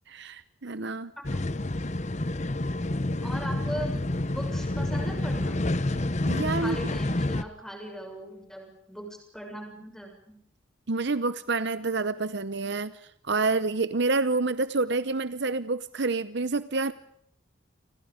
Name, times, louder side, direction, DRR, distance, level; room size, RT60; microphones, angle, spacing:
voice 1, 0.1-1.1 5.9-6.8 10.9-12.9 13.3-16.9, right 3 dB, 55° right, 14 dB, 0.9 m, -28 dB
sound 1, 1.2-7.4, left 1 dB, 35° left, 0.9 m, -28 dB
voice 2, 3.2-5.6 6.6-10.4, equal, ahead, 3 dB, 7.0 m, -39 dB
29.5 x 26.5 x 5.1 m, 0.69 s
head